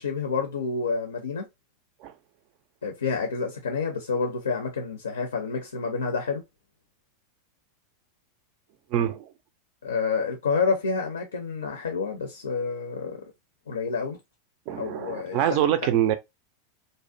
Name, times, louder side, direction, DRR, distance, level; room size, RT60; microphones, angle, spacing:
voice 1, 0.0-1.5 2.8-6.4 9.8-13.2 13.7-14.2 14.8-15.6, left 5 dB, 70° left, 0.4 m, -28 dB
voice 2, 8.9-9.3 14.7-16.1, right 11 dB, 45° right, 0.4 m, -25 dB
2.5 x 2.1 x 2.5 m
figure-of-eight pair, 85°, 0 cm